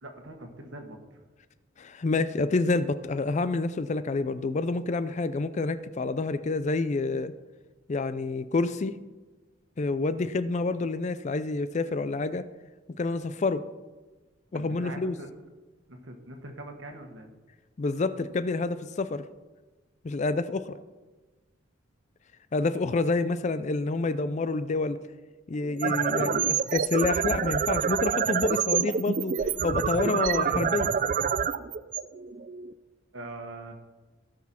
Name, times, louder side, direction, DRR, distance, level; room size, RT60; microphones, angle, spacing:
voice 1, 0.0-1.2 14.5-15.3 15.9-17.3 33.1-33.7, right 2 dB, 65° right, 4 dB, 1.5 m, -42 dB
voice 2, 1.8-7.3 7.9-8.9 9.8-12.4 13.0-13.6 14.5-15.1 17.8-19.2 20.0-20.8 22.5-25.0 25.5-29.4 29.6-30.9, left 3 dB, 35° left, 13 dB, 0.4 m, -28 dB
sound 1, 25.6-32.7, right 7 dB, 40° right, 0.4 m, -27 dB
17.0 x 6.2 x 4.3 m, 1.2 s
head